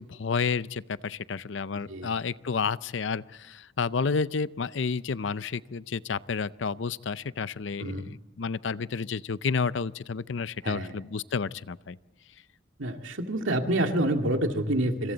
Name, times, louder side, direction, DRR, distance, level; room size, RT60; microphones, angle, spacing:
voice 1, 0.0-12.0, left 5 dB, 70° left, 17 dB, 0.6 m, -31 dB
voice 2, 7.8-8.1 10.6-10.9 12.8-15.1, right 1 dB, 80° right, 4 dB, 2.2 m, -28 dB
27.0 x 25.5 x 4.1 m, 1.1 s
head